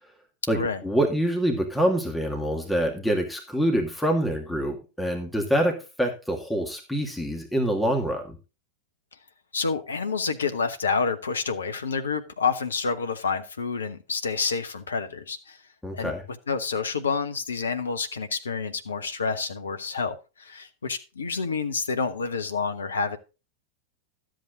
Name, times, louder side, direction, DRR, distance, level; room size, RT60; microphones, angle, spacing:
voice 1, 0.5-8.4 15.8-16.2, equal, 5° left, 2.2 m, -26 dB
voice 2, 9.5-15.6 15.9-16.1 16.5-23.2, left 5 dB, 70° left, 1.1 m, -28 dB
12.5 x 7.8 x 3.9 m
figure-of-eight pair, 90°, 0 cm